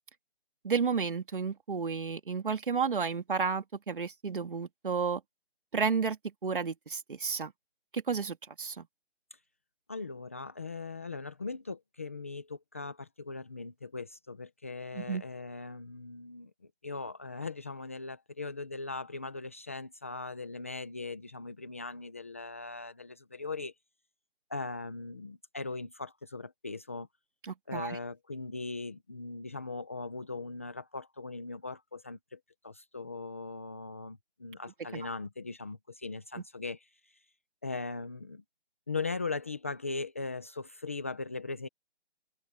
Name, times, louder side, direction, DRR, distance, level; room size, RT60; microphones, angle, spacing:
voice 1, 0.6-5.2 5.7-6.2 6.4-7.5 7.9-8.9 14.9-15.2 27.5-28.0 34.9-35.0, right 5 dB, 50° right, 2.8 m, -32 dB
voice 2, 9.9-16.5 16.8-23.7 24.5-27.1 27.7-36.9 37.6-38.4 38.9-41.7, left 3 dB, 15° left, 0.9 m, -39 dB
hypercardioid pair, 175°, 33 cm